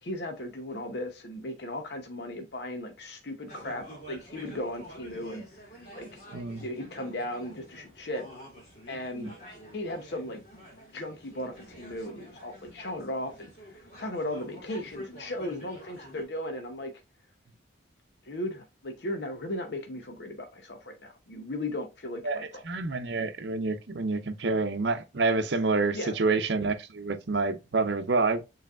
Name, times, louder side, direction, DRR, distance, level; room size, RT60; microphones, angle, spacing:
voice 1, 0.0-5.4 6.0-6.2 6.6-8.2 8.9-9.3 9.7-10.4 10.9-16.9 18.2-22.6 25.9-26.1, left 1 dB, 60° left, 0.8 m, -36 dB
sound 1, 3.5-16.2, equal, 40° left, 2.3 m, -48 dB
voice 2, 6.3-6.6 9.2-9.3 22.2-28.4, right 3 dB, 65° right, 0.6 m, -28 dB
6.8 x 3.3 x 2.4 m
head